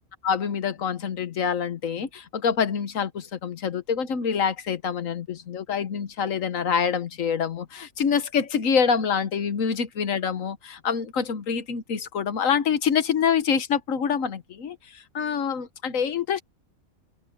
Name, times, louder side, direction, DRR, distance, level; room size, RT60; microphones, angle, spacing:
voice 1, 0.2-16.4, left 7 dB, 75° left, 1.5 m, -26 dB
open air
omnidirectional pair, 1.4 m